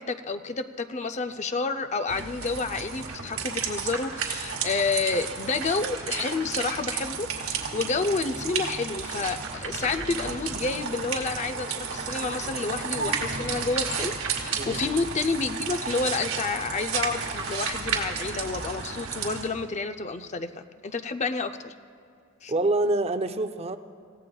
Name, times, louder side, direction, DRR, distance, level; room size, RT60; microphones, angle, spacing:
voice 1, 0.0-20.5 20.8-21.7 22.4-22.5, left 4 dB, 35° left, 9 dB, 0.5 m, -29 dB
sound 1, 2.1-19.5, right 5 dB, 85° right, 2.2 m, -32 dB
voice 2, 22.5-23.8, right 2 dB, 30° right, 9 dB, 0.5 m, -26 dB
27.0 x 16.0 x 2.3 m, 2.4 s
head